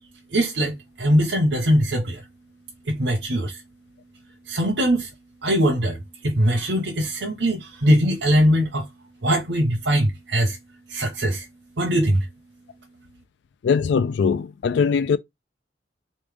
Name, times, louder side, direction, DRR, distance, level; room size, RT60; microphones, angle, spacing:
voice 1, 0.3-2.2 2.8-3.6 4.5-5.1 5.4-8.9 9.2-10.6 10.9-11.5 11.8-12.3, equal, 75° right, 0.9 m, -21 dB
voice 2, 13.6-15.2, left 6 dB, 75° left, 0.3 m, -21 dB
4.1 x 3.1 x 3.5 m
head